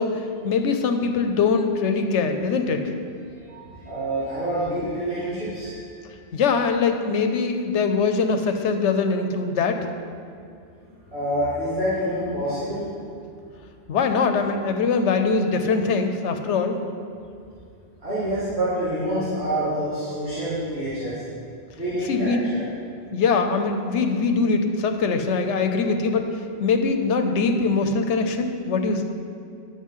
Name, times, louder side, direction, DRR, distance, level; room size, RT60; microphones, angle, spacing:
voice 1, 0.0-2.9 6.3-9.8 13.9-16.8 22.1-22.5 23.1-26.3 26.6-29.0, left 4 dB, 90° left, 6 dB, 1.0 m, -22 dB
voice 2, 3.5-5.7 11.1-12.8 18.0-21.2 21.8-22.6, right 1 dB, 65° right, -14 dB, 2.5 m, -27 dB
11.0 x 7.0 x 3.7 m, 2.4 s
omnidirectional pair, 1.2 m